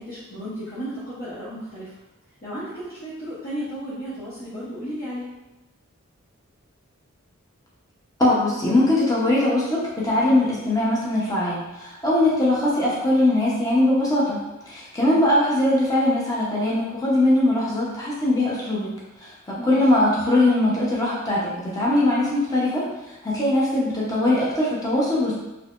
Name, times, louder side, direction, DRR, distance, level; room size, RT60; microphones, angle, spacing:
voice 1, 0.0-2.0 2.4-5.3 15.0-15.2 19.6-19.8, equal, 45° left, -11 dB, 0.9 m, -34 dB
voice 2, 8.2-14.4 14.7-18.9 19.2-25.3, left 1 dB, 15° left, -6 dB, 0.8 m, -21 dB
4.0 x 2.8 x 2.5 m, 0.98 s
head